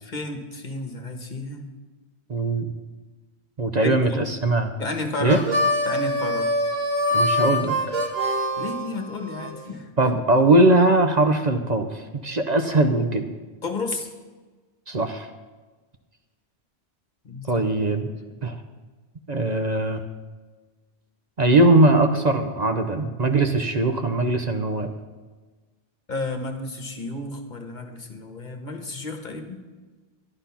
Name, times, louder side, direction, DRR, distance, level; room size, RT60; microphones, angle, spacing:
voice 1, 0.0-1.7 3.8-4.2 4.8-5.5 5.8-6.5 8.6-9.9 13.6-14.1 17.2-18.0 18.4-18.5 26.1-29.6, left 2 dB, 45° left, 5 dB, 1.3 m, -32 dB
voice 2, 2.3-2.7 3.6-4.7 5.2-5.4 7.1-7.9 10.0-13.3 14.9-15.3 17.5-18.1 18.4-18.6 19.3-20.0 21.4-24.9, right 2 dB, 45° right, 5 dB, 0.9 m, -20 dB
Harmonica, 5.2-9.5, left 1 dB, 65° right, 1.8 m, -24 dB
12.0 x 11.5 x 5.7 m, 1.3 s
omnidirectional pair, 1.1 m